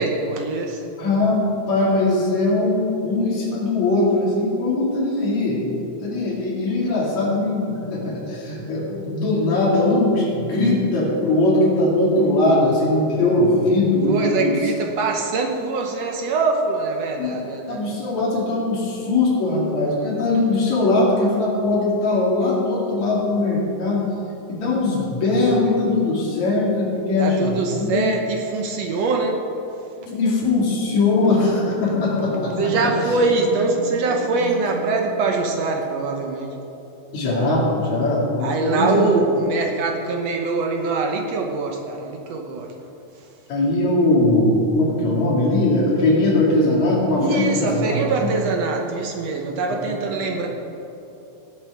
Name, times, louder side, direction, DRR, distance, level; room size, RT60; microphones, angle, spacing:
voice 1, 0.0-0.8 14.1-17.8 27.2-29.4 32.6-36.5 38.4-42.7 47.2-50.5, right 3 dB, 70° right, 2 dB, 2.0 m, -23 dB
voice 2, 1.0-5.6 6.0-14.6 17.2-17.4 17.7-24.0 24.5-28.0 30.1-32.9 37.1-39.1 43.5-48.3 49.7-49.8 50.2-50.3, left 2 dB, 70° left, -4 dB, 3.8 m, -20 dB
sound 1, 31.0-35.9, right 2 dB, 25° right, 0.9 m, -35 dB
18.0 x 8.1 x 4.9 m, 2.9 s
omnidirectional pair, 3.4 m